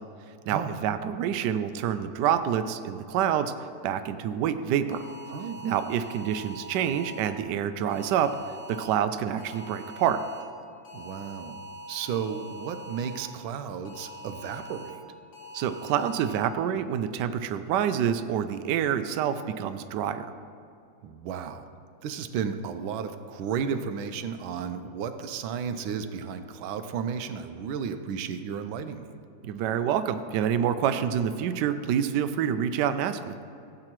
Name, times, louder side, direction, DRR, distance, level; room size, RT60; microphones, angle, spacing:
voice 1, 0.5-3.5 3.8-5.0 5.6-8.4 8.7-10.2 15.5-20.3 29.4-33.4, right 9 dB, 75° right, 10 dB, 1.1 m, -27 dB
sound 1, 4.9-7.3 7.9-8.9 9.4-10.4 10.8-13.2 13.8-14.9 15.3-16.4, equal, 70° left, 2.3 m, -43 dB
voice 2, 5.3-5.7 10.9-11.6 11.9-15.0 21.0-21.7 22.0-29.1, right 7 dB, 90° right, 9 dB, 1.4 m, -33 dB
16.5 x 7.7 x 3.0 m, 2.6 s
omnidirectional pair, 2.1 m